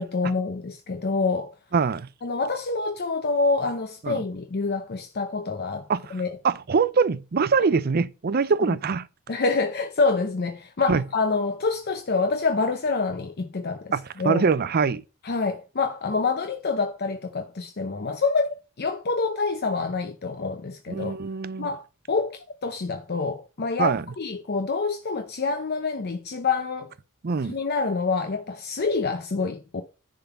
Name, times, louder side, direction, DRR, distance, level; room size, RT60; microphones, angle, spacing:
voice 1, 0.0-1.5 2.2-6.4 9.3-13.9 14.2-14.4 15.2-21.2 21.6-26.9 27.5-29.8, left 4 dB, 50° left, 0.7 m, -27 dB
voice 2, 1.7-2.1 4.0-4.2 5.9-9.1 10.9-11.0 13.9-15.0 20.9-21.7 23.8-24.0 27.2-27.6, right 5 dB, 45° right, 0.5 m, -23 dB
10.5 x 3.8 x 5.7 m
head